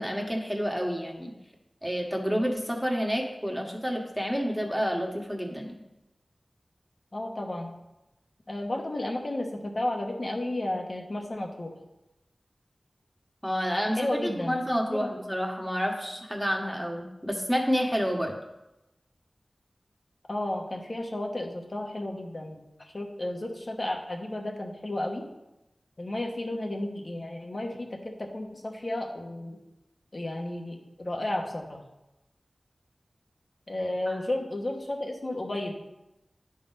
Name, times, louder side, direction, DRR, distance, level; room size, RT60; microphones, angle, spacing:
voice 1, 0.0-1.3 1.8-5.8 13.4-18.3 34.1-34.2, equal, 5° right, 0 dB, 1.5 m, -29 dB
voice 2, 7.1-7.7 8.5-11.8 13.9-14.5 14.9-15.1 20.3-25.2 26.0-29.6 30.1-31.8 33.7-35.8, left 1 dB, 50° left, 2 dB, 1.3 m, -33 dB
10.5 x 4.1 x 5.4 m, 0.96 s
wide cardioid pair, 55°, 0 cm